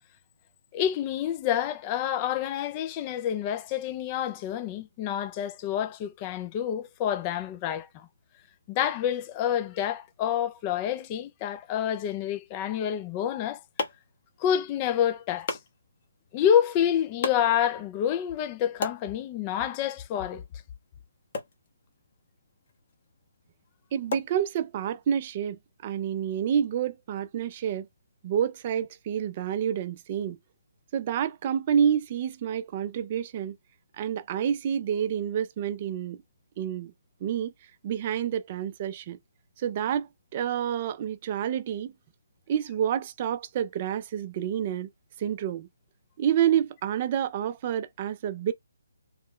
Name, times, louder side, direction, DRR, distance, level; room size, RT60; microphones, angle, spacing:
voice 1, 0.7-8.1 8.7-13.6 14.4-15.6 16.3-20.4, left 10 dB, 25° left, 0.4 m, -28 dB
sound 1, 13.1-25.0, left 4 dB, 45° left, 0.9 m, -40 dB
voice 2, 23.9-27.9 28.2-30.4 30.9-33.6 34.0-36.2 36.6-36.9 37.2-37.5 37.8-39.2 39.6-41.9 42.5-44.9 45.2-45.7 46.2-48.5, right 9 dB, 30° right, 0.5 m, -28 dB
3.1 x 2.2 x 3.6 m
hypercardioid pair, 155°, 0 cm